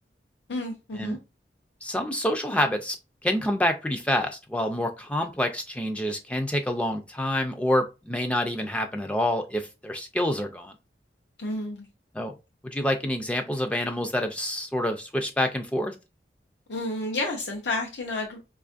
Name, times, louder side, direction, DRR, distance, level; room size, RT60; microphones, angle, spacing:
voice 1, 0.5-1.2 11.4-11.9 16.7-18.4, left 2 dB, 85° left, 0.7 m, -30 dB
voice 2, 1.8-3.0 3.2-10.7 12.1-12.3 12.6-15.9, left 1 dB, 5° left, 0.3 m, -27 dB
5.0 x 2.4 x 2.4 m
head